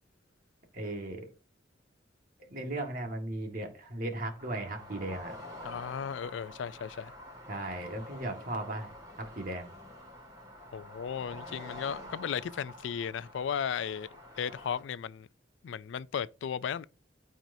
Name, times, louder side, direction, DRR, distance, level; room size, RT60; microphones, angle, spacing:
voice 1, 0.7-1.3 2.5-5.4 7.5-8.9 9.2-9.7, right 1 dB, 45° right, 1.7 m, -36 dB
sound 1, 4.4-14.8, left 1 dB, 20° right, 3.6 m, -48 dB
voice 2, 5.6-7.1 10.7-14.1 14.4-15.3 15.6-16.8, left 7 dB, 80° left, 0.4 m, -35 dB
13.0 x 4.6 x 2.7 m
head